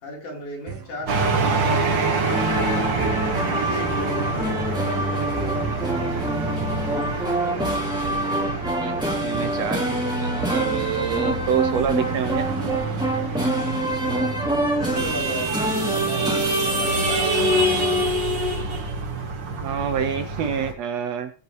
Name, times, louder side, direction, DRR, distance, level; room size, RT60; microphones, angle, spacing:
voice 1, 0.0-1.8 2.5-5.9 14.7-15.5 15.9-17.5, equal, 75° left, -3 dB, 5.4 m, -35 dB
sound 1, 0.7-16.3, right 3 dB, 90° right, 4.1 m, -40 dB
sound 2, 1.1-20.7, right 2 dB, 40° right, 2.1 m, -26 dB
sound 3, 2.3-18.0, right 1 dB, ahead, 2.0 m, -27 dB
voice 2, 8.8-12.5 19.6-21.3, right 7 dB, 75° right, 9 dB, 1.7 m, -27 dB
19.5 x 7.9 x 3.2 m, 0.38 s
omnidirectional pair, 3.6 m